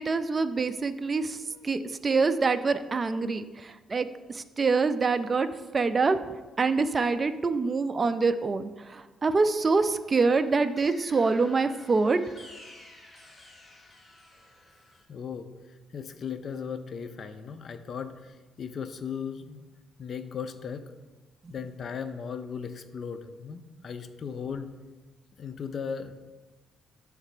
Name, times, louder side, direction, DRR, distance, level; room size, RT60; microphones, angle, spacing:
voice 1, 0.0-12.2 21.4-21.5, right 4 dB, 30° right, 11 dB, 0.4 m, -26 dB
sound 1, 9.9-15.0, left 2 dB, 20° left, 1.0 m, -52 dB
voice 2, 15.1-19.7 20.0-20.9 21.5-24.8 25.4-26.1, left 6 dB, 50° left, 10 dB, 0.5 m, -37 dB
7.7 x 3.3 x 4.9 m, 1.2 s
cardioid pair, 90°, 0 cm